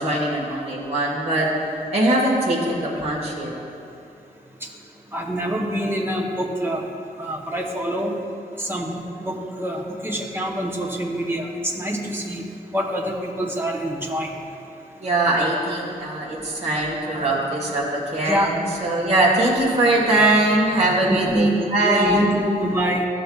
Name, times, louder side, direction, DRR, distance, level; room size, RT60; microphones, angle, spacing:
voice 1, 0.0-1.5 1.9-3.5 15.0-22.3, right 1 dB, 45° right, -4 dB, 1.4 m, -21 dB
voice 2, 5.1-6.8 7.2-8.1 8.6-12.4 12.7-14.3 17.1-17.3 18.3-18.5 21.0-21.5 21.8-23.0, right 1 dB, 15° right, 0 dB, 0.8 m, -25 dB
13.5 x 6.7 x 2.3 m, 2.7 s
wide cardioid pair, 165°, 15 cm